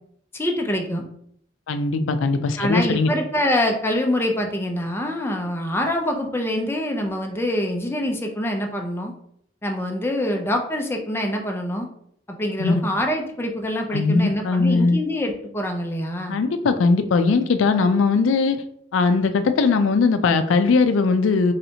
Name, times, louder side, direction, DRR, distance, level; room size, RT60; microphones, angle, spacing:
voice 1, 0.3-1.0 2.6-9.1 9.6-11.9 12.3-16.4, left 1 dB, 10° left, 2 dB, 0.5 m, -25 dB
voice 2, 1.7-3.1 12.6-12.8 13.9-15.0 16.3-18.6 18.9-21.5, left 4 dB, 90° left, 8 dB, 0.4 m, -19 dB
4.1 x 3.2 x 2.8 m, 0.69 s
head